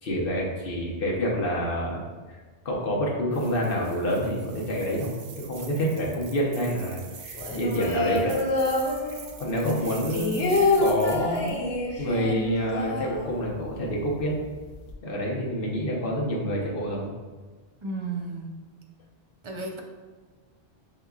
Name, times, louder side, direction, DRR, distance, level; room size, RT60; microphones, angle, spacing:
voice 1, 0.0-8.4 9.4-11.6 12.0-14.4 15.0-17.1, equal, 55° left, -3 dB, 1.0 m, -28 dB
sound 1, 3.3-11.6, right 6 dB, 75° right, 0.8 m, -45 dB
sound 2, 7.3-9.5 9.8-13.8 14.1-14.2 14.4-14.9, left 2 dB, 80° left, 1.0 m, -27 dB
voice 2, 17.8-18.6 19.4-19.8, right 3 dB, 40° right, 1 dB, 0.4 m, -33 dB
6.6 x 2.8 x 2.3 m, 1.4 s
omnidirectional pair, 1.2 m